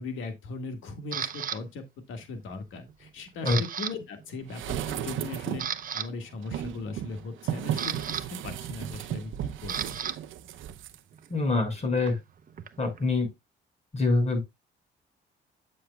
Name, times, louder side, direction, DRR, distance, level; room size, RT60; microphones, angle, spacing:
voice 1, 0.0-5.6 5.9-10.0, left 3 dB, 85° left, 1.7 m, -39 dB
Camera, 1.1-1.6 2.2-2.5 2.9-3.9 4.2-4.4 5.0-5.1 5.4-6.1 7.3-10.2 10.4-13.0, right 8 dB, 45° right, 0.8 m, -35 dB
sound 1, 4.5-5.8 6.4-11.0 11.3-11.4, right 11 dB, 80° right, 0.7 m, -35 dB
voice 2, 11.3-12.2 12.8-13.3 13.9-14.4, left 3 dB, 35° left, 5.3 m, -25 dB
9.0 x 6.4 x 2.3 m
cardioid pair, 90°, 20 cm